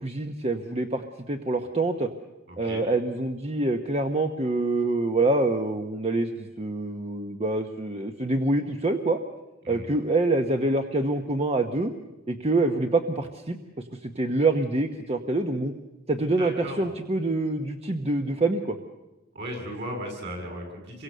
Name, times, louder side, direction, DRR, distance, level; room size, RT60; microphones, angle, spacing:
voice 1, 0.0-2.1 2.6-9.2 9.7-11.9 12.3-13.6 14.0-15.7 16.1-18.8, right 2 dB, 30° right, 5 dB, 1.1 m, -26 dB
voice 2, 2.5-2.8 9.6-9.9 16.4-16.9 19.3-21.0, equal, 60° right, 2 dB, 7.4 m, -36 dB
27.5 x 23.0 x 6.7 m, 1.0 s
head